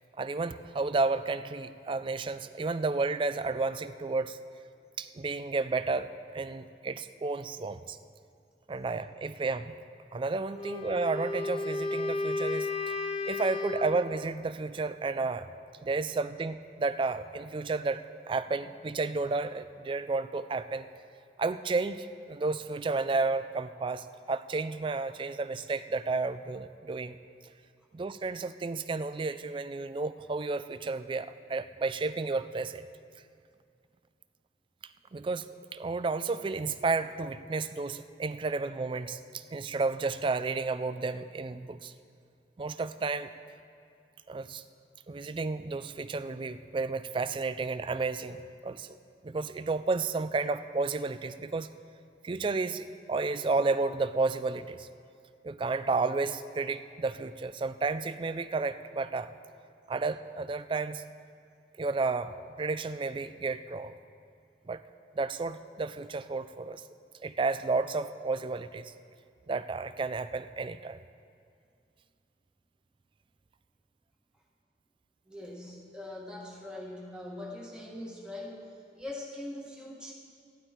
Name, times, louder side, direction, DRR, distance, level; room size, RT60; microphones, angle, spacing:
voice 1, 0.2-4.4 5.0-8.0 8.7-9.8 10.1-12.9 13.3-15.5 15.8-20.9 21.4-27.2 27.9-32.8 35.1-41.9 42.6-43.3 44.3-44.6 45.1-49.0 49.2-51.7 52.2-54.9 55.4-59.3 59.9-61.0 61.8-63.9 64.7-64.8 65.2-66.8 67.2-68.9 69.5-71.0, right 3 dB, 25° right, 13 dB, 0.3 m, -32 dB
Wind instrument woodwind instrument, 10.5-14.1, left 3 dB, 35° left, 0.7 m, -33 dB
voice 2, 75.3-78.7 78.9-80.1, left 1 dB, 5° right, -4 dB, 1.4 m, -42 dB
15.0 x 11.5 x 4.4 m, 2.4 s
head